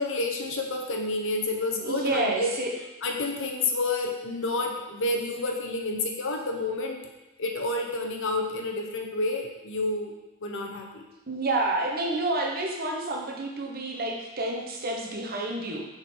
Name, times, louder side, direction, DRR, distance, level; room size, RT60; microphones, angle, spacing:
voice 1, 0.0-2.7 3.0-7.0 7.4-10.1 10.4-11.1, left 2 dB, 65° left, 2 dB, 1.1 m, -29 dB
voice 2, 1.8-2.7 11.3-15.8, right 2 dB, 45° right, 0 dB, 1.2 m, -29 dB
6.8 x 5.4 x 4.6 m, 1.0 s
head